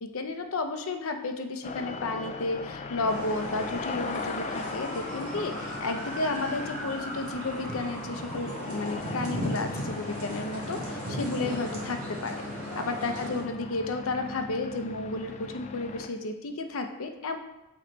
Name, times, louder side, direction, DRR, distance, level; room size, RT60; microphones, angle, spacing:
voice 1, 0.0-12.4 12.8-17.4, left 3 dB, 75° left, 6 dB, 0.6 m, -32 dB
sound 1, 1.6-16.1, left 4 dB, 30° left, 0.3 m, -38 dB
sound 2, 3.0-13.4, right 1 dB, 85° right, 2.0 m, -37 dB
7.7 x 3.2 x 4.0 m, 0.97 s
head